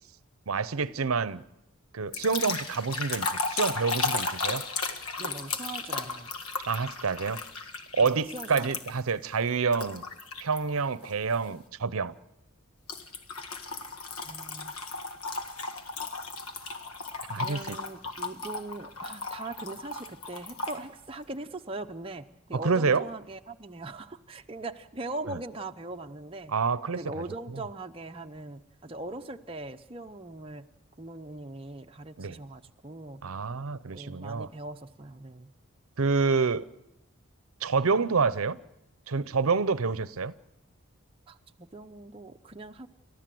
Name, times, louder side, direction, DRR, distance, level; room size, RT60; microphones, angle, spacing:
voice 1, 0.5-1.4 1.9-4.6 6.7-7.4 7.9-10.0 10.4-12.2 17.3-17.8 22.5-23.0 25.3-25.4 26.5-27.2 32.2-32.4 33.2-34.5 36.0-36.7 37.6-38.6 39.1-40.3, right 4 dB, 75° right, 0.7 m, -28 dB
sound 1, 2.1-9.1 9.7-10.6 11.0-11.3 12.9-20.8, left 4 dB, 85° left, 1.8 m, -35 dB
voice 2, 5.2-6.3 8.0-8.7 14.2-14.7 17.4-26.6 26.9-30.7 31.0-33.2 33.9-35.5 41.3-42.9, right 2 dB, 25° right, 0.7 m, -40 dB
30.0 x 13.0 x 7.7 m
head